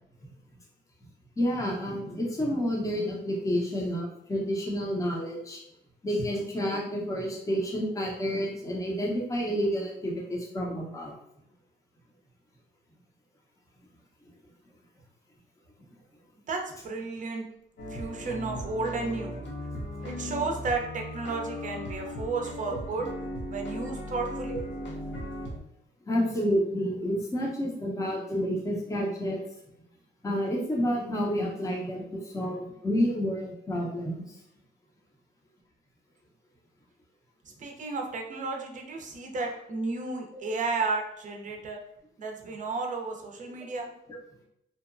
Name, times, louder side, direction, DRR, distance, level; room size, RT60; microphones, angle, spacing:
voice 1, 1.4-5.6 6.0-11.1 26.1-29.4 30.2-34.4 40.3-40.5 44.1-44.2, equal, 15° left, -2 dB, 0.7 m, -29 dB
voice 2, 16.5-17.4 17.9-19.4 20.0-23.0 23.5-24.6 37.6-41.8 42.2-43.9, right 3 dB, 40° right, 2 dB, 0.6 m, -33 dB
sound 1, 17.8-25.6, left 1 dB, 65° left, 0.7 m, -37 dB
2.8 x 2.1 x 2.5 m, 0.77 s
cardioid pair, 90°, 20 cm